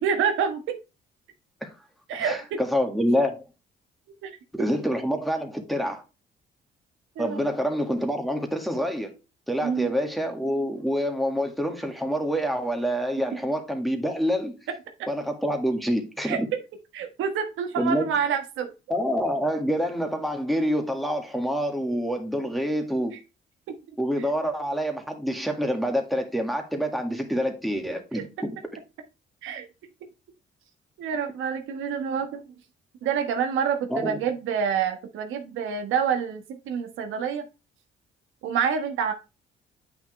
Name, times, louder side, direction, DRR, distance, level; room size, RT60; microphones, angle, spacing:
voice 1, 0.0-0.8 2.1-2.6 4.2-4.3 7.1-7.4 9.6-9.9 16.2-16.4 16.9-18.7 23.7-23.8 28.1-28.2 29.4-29.7 31.0-32.4 33.0-37.4 38.4-39.1, right 7 dB, 85° right, 1.3 m, -27 dB
voice 2, 2.2-3.4 4.5-6.0 7.2-9.1 9.5-14.6 15.1-16.5 17.8-18.1 18.9-23.2 24.0-28.5 33.9-34.2, equal, ahead, 1.9 m, -27 dB
8.7 x 5.8 x 3.2 m
cardioid pair, 90°, 20 cm